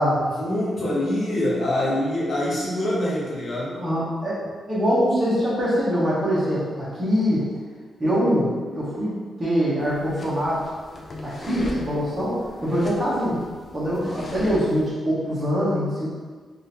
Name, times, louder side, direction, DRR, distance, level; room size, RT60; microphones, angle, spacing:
voice 1, 0.4-3.7, left 1 dB, 50° left, -6 dB, 0.9 m, -25 dB
voice 2, 3.7-4.4 4.7-7.4 8.0-9.1 9.4-10.6 11.2-13.4 13.7-16.1, equal, 20° right, -10 dB, 0.9 m, -23 dB
sound 1, 9.8-14.9, left 1 dB, 25° left, 0.3 m, -38 dB
3.6 x 2.5 x 2.8 m, 1.5 s
wide cardioid pair, 175°, 0 cm